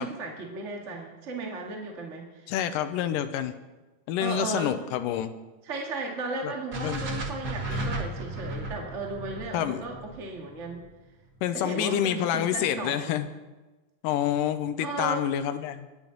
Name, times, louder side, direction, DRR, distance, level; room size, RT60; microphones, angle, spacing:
voice 1, 0.0-2.5 4.2-4.8 5.6-10.8 11.5-13.2 14.8-15.3, right 3 dB, 30° right, 0 dB, 1.6 m, -35 dB
voice 2, 2.5-3.6 4.1-5.3 6.4-6.5 6.8-7.0 9.5-9.8 11.4-13.3 14.0-15.9, left 10 dB, 90° left, 9 dB, 2.4 m, -28 dB
sound 1, 6.7-10.9, right 1 dB, 50° right, 1.2 m, -34 dB
25.5 x 10.0 x 3.9 m, 1.2 s
omnidirectional pair, 3.7 m